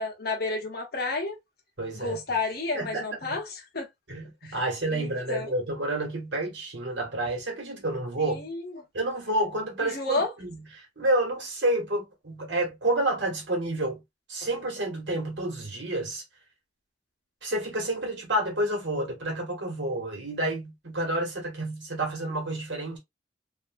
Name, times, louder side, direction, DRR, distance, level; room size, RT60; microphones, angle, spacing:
voice 1, 0.0-1.4 1.9-3.9 4.4-4.6 4.9-5.5 8.2-8.8 9.8-10.3, left 3 dB, 60° left, 1.0 m, -31 dB
voice 2, 1.8-2.2 2.7-3.4 4.1-8.5 8.9-14.0 14.3-16.2 17.4-23.0, right 1 dB, 80° right, 1.3 m, -29 dB
2.8 x 2.5 x 2.5 m
head